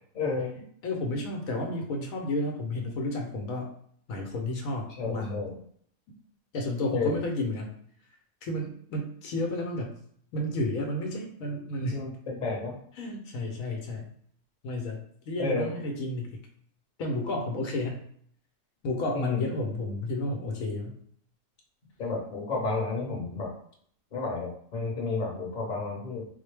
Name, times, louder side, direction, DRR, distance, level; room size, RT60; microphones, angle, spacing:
voice 1, 0.1-0.5 5.0-5.6 6.9-7.2 11.9-12.8 15.4-15.7 19.1-19.5 22.0-23.5 24.1-26.3, left 3 dB, 35° left, -3 dB, 1.0 m, -31 dB
voice 2, 0.8-3.7 4.1-5.4 6.5-7.7 8.4-10.0 10.3-12.0 13.0-14.1 14.6-16.5 17.0-18.1 18.8-21.0, left 1 dB, 85° left, 2 dB, 1.1 m, -31 dB
3.9 x 2.1 x 3.3 m, 0.62 s
omnidirectional pair, 1.4 m